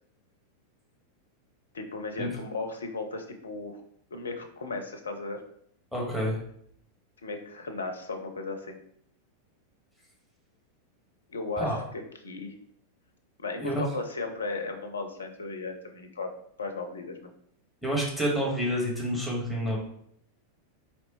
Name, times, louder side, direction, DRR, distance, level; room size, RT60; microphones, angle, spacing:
voice 1, 1.7-3.8 4.1-5.4 7.2-8.8 11.3-12.5 13.4-16.3 16.6-17.3, left 3 dB, 70° left, 6 dB, 0.6 m, -36 dB
voice 2, 5.9-6.4 11.6-11.8 13.6-13.8 17.8-19.8, equal, ahead, -3 dB, 1.5 m, -28 dB
4.1 x 3.1 x 3.1 m, 0.67 s
figure-of-eight pair, 90°, 0 cm